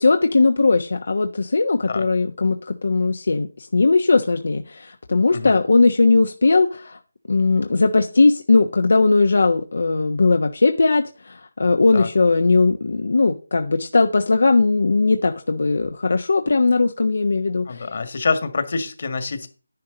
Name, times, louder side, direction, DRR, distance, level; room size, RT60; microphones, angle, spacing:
voice 1, 0.0-7.0 7.3-17.8, left 3 dB, 60° left, 5 dB, 1.1 m, -18 dB
voice 2, 17.7-19.5, left 4 dB, 45° left, 8 dB, 1.8 m, -26 dB
10.5 x 9.6 x 4.0 m, 0.35 s
figure-of-eight pair, 170°, 0 cm